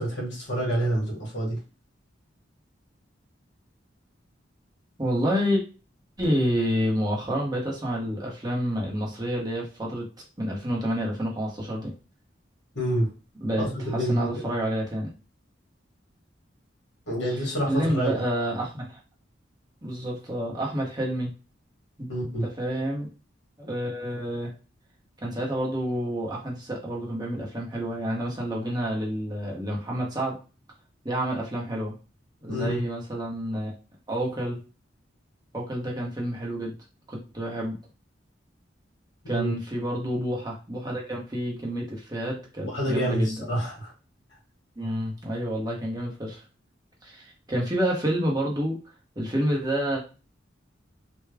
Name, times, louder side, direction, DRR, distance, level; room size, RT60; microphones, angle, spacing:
voice 1, 0.0-1.6 12.8-13.1 13.6-14.3 17.1-18.2 22.1-22.4 32.5-32.8 39.2-39.5 42.6-43.9, right 1 dB, 75° left, -4 dB, 1.9 m, -27 dB
voice 2, 5.0-5.6 6.2-10.1 10.4-11.9 13.4-15.1 17.3-19.0 19.8-21.3 22.0-22.1 22.4-23.1 23.6-24.5 25.2-30.4 31.0-31.9 32.4-33.7 34.1-34.6 35.5-36.7 37.1-37.8 39.3-43.4 44.8-46.4 47.0-48.8 49.2-50.0, equal, 20° right, -3 dB, 1.0 m, -29 dB
3.5 x 2.3 x 3.3 m, 0.33 s
head